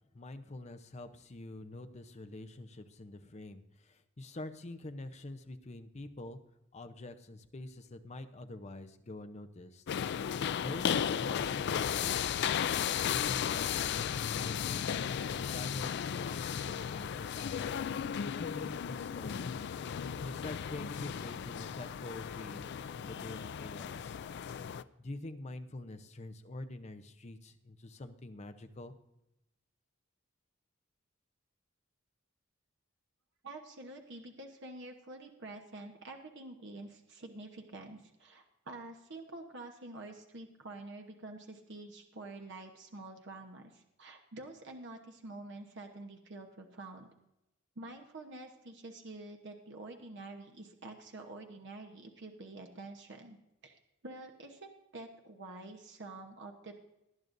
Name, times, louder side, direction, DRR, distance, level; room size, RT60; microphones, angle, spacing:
voice 1, 0.1-6.4 6.7-9.8 10.6-12.2 13.0-17.7 18.4-19.7 20.2-24.2 25.0-28.9, left 2 dB, 35° left, 8 dB, 0.7 m, -46 dB
sound 1, 9.9-24.8, left 8 dB, 55° left, 0.4 m, -35 dB
voice 2, 33.4-47.1 47.8-53.4 53.6-56.8, right 2 dB, 60° right, 3 dB, 1.1 m, -48 dB
19.0 x 10.5 x 2.6 m, 0.90 s
head